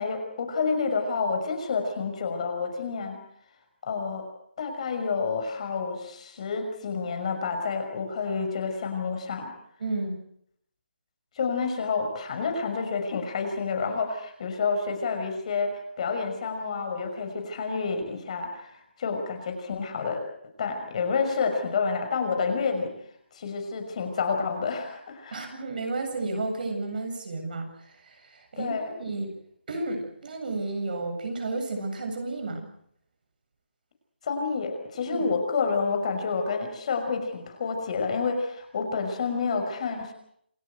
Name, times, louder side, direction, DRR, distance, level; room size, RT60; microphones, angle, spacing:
voice 1, 0.0-3.2 3.8-4.3 4.6-9.5 11.4-18.7 19.0-20.2 20.6-22.9 23.3-25.5 28.6-28.9 34.2-40.1, left 5 dB, 40° left, 5 dB, 5.7 m, -29 dB
voice 2, 9.8-10.2 25.3-29.3 29.7-32.7 35.1-35.3, right 2 dB, 55° right, 5 dB, 7.8 m, -32 dB
28.0 x 17.5 x 8.0 m, 0.70 s
hypercardioid pair, 165°, 6 cm